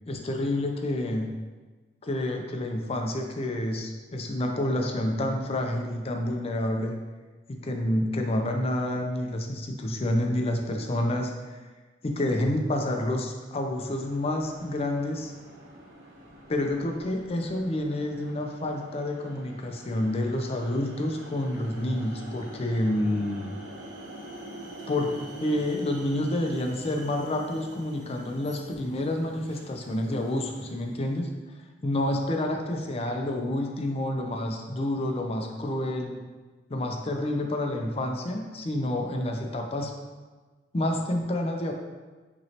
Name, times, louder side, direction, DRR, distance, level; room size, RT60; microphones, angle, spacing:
voice 1, 0.1-1.3 2.0-6.9 7.5-11.6 12.0-15.3 16.5-23.6 24.9-25.1 25.4-31.3 31.8-36.2 36.7-39.9 40.7-41.7, left 1 dB, 35° left, 2 dB, 0.5 m, -29 dB
sound 1, 13.7-31.2, right 1 dB, 85° right, 1.0 m, -46 dB
5.7 x 3.1 x 2.8 m, 1.3 s
head